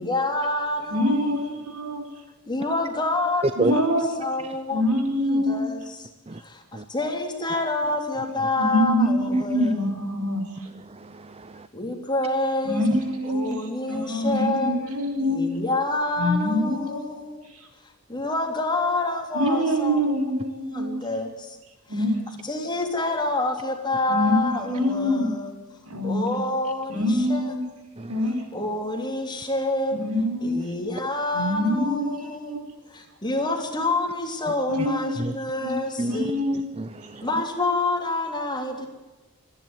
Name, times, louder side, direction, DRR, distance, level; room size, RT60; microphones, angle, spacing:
voice 1, 0.0-1.6 2.5-3.4 3.7-3.8 4.2-4.8 5.3-6.1 6.4-9.9 11.7-12.8 13.2-14.8 15.2-17.5 17.8-20.2 20.7-21.6 21.9-22.0 22.4-25.6 26.0-27.4 28.5-30.0 30.4-32.6 32.9-36.4 37.2-38.9, left 2 dB, 20° left, 3 dB, 3.2 m, -28 dB
voice 2, 0.9-2.0 3.6-4.1 4.7-5.6 8.6-10.5 12.6-13.5 13.9-15.4 16.2-17.1 19.3-21.0 21.9-22.2 24.1-25.3 25.8-26.3 26.9-27.6 28.1-28.4 29.9-30.6 31.3-32.2 32.5-32.7 34.7-35.3 35.6-35.8 36.1-36.6, equal, 80° right, 4 dB, 4.8 m, -24 dB
voice 3, 10.8-11.7 12.9-13.0 28.0-28.2 35.2-35.3 36.0-36.2 36.8-37.3, right 2 dB, 25° right, 12 dB, 0.7 m, -30 dB
27.0 x 11.0 x 9.2 m, 1.2 s
head